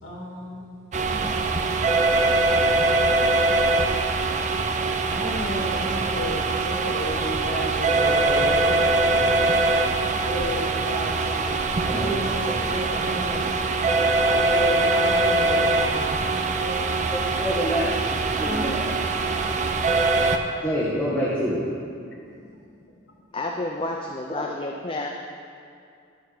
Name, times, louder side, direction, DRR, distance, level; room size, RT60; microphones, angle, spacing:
voice 1, 0.0-2.5 5.0-9.5 10.2-11.7 11.9-13.5 14.2-17.4 18.4-18.7 22.5-22.6, equal, 70° left, 2.7 m, -33 dB
sound 1, 0.9-20.4, right 3 dB, 35° right, 0.5 m, -23 dB
voice 2, 17.4-18.8 20.6-21.7, equal, 5° left, 1.4 m, -27 dB
voice 3, 23.3-25.1, left 2 dB, 25° left, 0.5 m, -30 dB
11.5 x 5.7 x 6.5 m
head